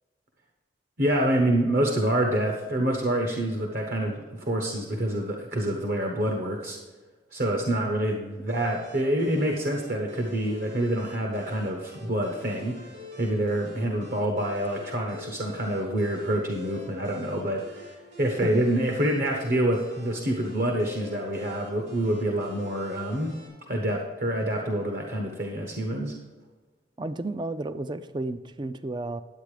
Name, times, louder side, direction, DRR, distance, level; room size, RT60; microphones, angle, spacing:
voice 1, 1.0-6.8 7.3-12.9 13.2-23.3 23.7-26.2, right 1 dB, 50° right, 2 dB, 1.1 m, -27 dB
sound 1, 8.5-23.5, left 2 dB, 75° right, 3.9 m, -46 dB
voice 2, 27.0-29.2, right 2 dB, 25° right, 12 dB, 0.4 m, -32 dB
10.5 x 8.2 x 5.0 m, 1.3 s
head